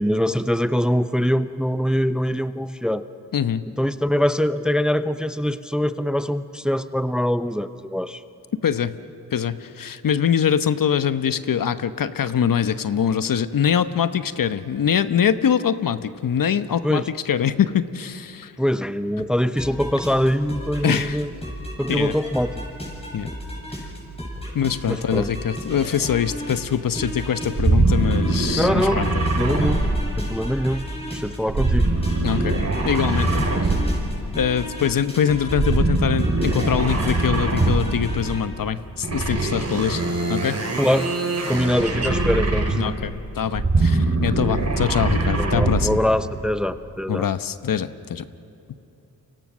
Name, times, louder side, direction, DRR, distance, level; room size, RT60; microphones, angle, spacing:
voice 1, 0.0-3.1 3.8-8.2 16.8-17.1 18.6-21.3 21.8-22.6 24.9-25.3 28.6-29.0 29.3-29.8 30.2-30.9 31.1-31.9 40.8-41.1 41.5-42.8 45.4-47.3, equal, ahead, 12 dB, 0.8 m, -23 dB
voice 2, 3.3-3.7 8.6-9.0 9.3-18.5 20.8-21.2 21.9-22.1 23.1-23.3 23.8-23.9 24.5-29.3 32.2-32.6 32.8-33.7 34.4-40.0 40.3-40.6 42.7-46.0 47.1-48.2, left 8 dB, 60° left, 12 dB, 1.0 m, -23 dB
sound 1, 19.6-38.4, equal, 15° left, 8.0 m, -33 dB
sound 2, 27.5-30.6 31.5-34.2 35.5-38.1 39.0-43.0 43.4-45.9, right 2 dB, 40° right, 5.6 m, -22 dB
29.0 x 25.0 x 6.3 m, 2.9 s
cardioid pair, 55°, 38 cm